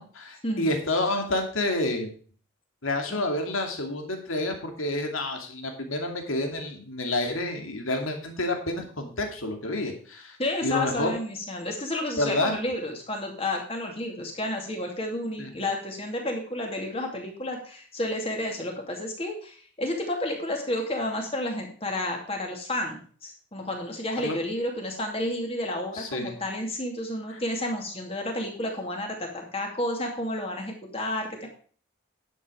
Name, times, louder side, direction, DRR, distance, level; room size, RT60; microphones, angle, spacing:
voice 1, 0.0-2.1 2.8-10.4 10.6-11.1 12.2-12.6 15.4-15.5 24.2-24.4 25.9-26.4 27.3-27.4, left 2 dB, 90° left, 4 dB, 2.6 m, -29 dB
voice 2, 10.4-31.5, left 1 dB, 30° left, 2 dB, 2.5 m, -31 dB
11.0 x 7.6 x 5.0 m, 0.43 s
head